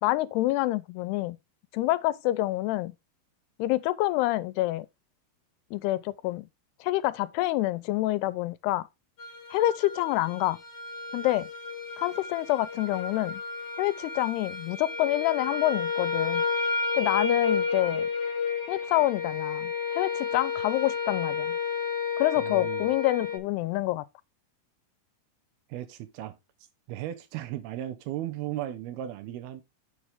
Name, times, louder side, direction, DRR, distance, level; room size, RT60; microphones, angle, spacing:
voice 1, 0.0-1.4 1.7-2.9 3.6-4.9 5.7-6.5 6.8-8.9 9.5-10.6 11.1-11.5 12.0-13.4 13.8-16.4 16.9-18.1 18.7-21.6 22.2-24.1, left 16 dB, 90° left, 2.7 m, -27 dB
sound 1, 9.2-23.4, left 5 dB, 35° left, 1.9 m, -31 dB
voice 2, 22.4-22.9 25.7-26.4 26.9-29.6, right 13 dB, 80° right, 2.8 m, -36 dB
7.4 x 6.7 x 3.5 m
omnidirectional pair, 4.6 m